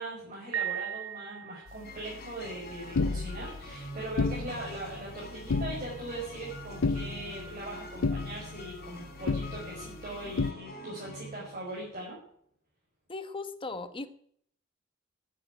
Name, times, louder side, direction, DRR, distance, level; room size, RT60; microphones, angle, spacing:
voice 1, 0.0-12.2, right 1 dB, 40° right, -5 dB, 5.4 m, -40 dB
Piano, 0.5-2.0, right 10 dB, 70° right, 0.5 m, -36 dB
sound 1, 1.7-10.5, left 3 dB, 75° left, 0.6 m, -34 dB
sound 2, 1.8-12.0, equal, 50° left, 4.7 m, -46 dB
voice 2, 13.1-14.1, left 3 dB, 25° left, 11 dB, 1.1 m, -37 dB
12.0 x 9.2 x 9.1 m, 0.66 s
head